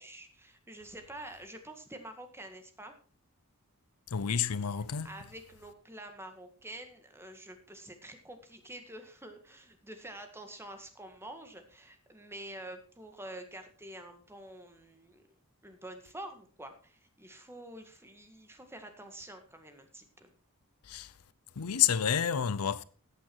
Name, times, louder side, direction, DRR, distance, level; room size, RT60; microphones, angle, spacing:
voice 1, 0.0-2.9 5.0-15.2 15.6-20.3, right 1 dB, 10° right, 1.8 m, -47 dB
voice 2, 4.1-5.1 20.8-21.1 21.6-22.8, left 8 dB, 75° left, 0.6 m, -29 dB
15.0 x 8.7 x 4.6 m
head